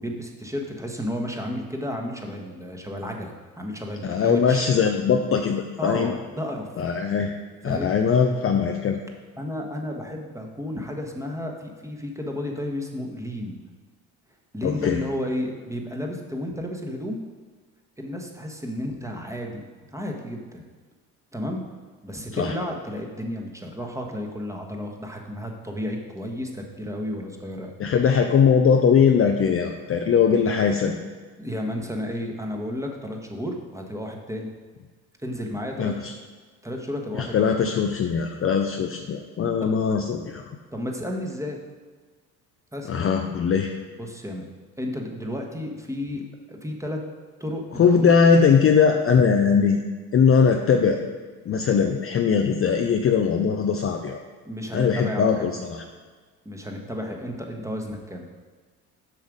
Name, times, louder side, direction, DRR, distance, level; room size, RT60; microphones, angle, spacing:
voice 1, 0.0-4.6 5.8-6.7 7.7-8.0 9.4-13.6 14.5-17.2 18.0-19.6 19.9-20.6 21.3-21.6 22.0-27.7 31.4-34.5 35.2-36.0 36.6-37.6 40.7-41.6 42.7-42.9 44.0-44.5 44.8-46.2 46.5-47.0 47.4-48.1 54.4-55.7 56.4-58.3, left 1 dB, 5° right, 1 dB, 1.3 m, -32 dB
voice 2, 4.0-6.1 6.8-7.3 7.6-9.0 14.6-15.0 22.3-22.5 27.8-31.0 35.8-35.9 37.2-40.4 42.9-43.7 47.8-49.8 50.1-51.0 51.5-54.2 54.7-55.8, left 6 dB, 30° left, 4 dB, 0.6 m, -20 dB
7.4 x 5.7 x 5.0 m, 1.4 s
hypercardioid pair, 65°, 45 cm